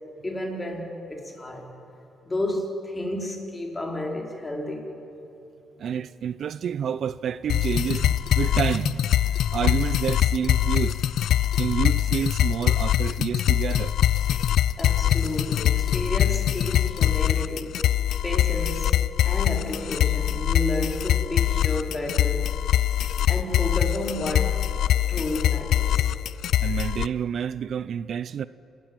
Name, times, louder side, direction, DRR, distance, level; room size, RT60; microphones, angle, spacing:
voice 1, 0.2-1.7 2.3-4.9 14.8-17.7 18.2-19.0 19.2-22.5 23.3-24.6 25.1-26.1, left 1 dB, 20° left, 4.3 m, -31 dB
voice 2, 5.8-10.9 11.6-14.0 26.6-28.5, right 8 dB, 60° right, 0.5 m, -29 dB
sound 1, 7.5-27.1, left 11 dB, 75° left, 0.4 m, -23 dB
28.5 x 13.5 x 9.0 m
cardioid pair, 90°, 0 cm